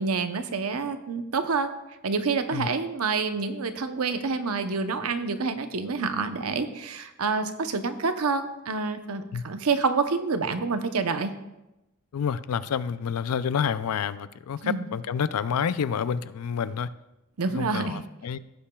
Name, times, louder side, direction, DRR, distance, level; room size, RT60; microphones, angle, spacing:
voice 1, 0.0-1.7 2.0-11.3 14.6-14.9 17.4-18.0, right 4 dB, 80° right, 9 dB, 0.8 m, -27 dB
voice 2, 12.1-16.9 17.5-18.4, left 7 dB, 85° left, 15 dB, 0.4 m, -28 dB
16.0 x 8.7 x 2.3 m, 0.96 s
head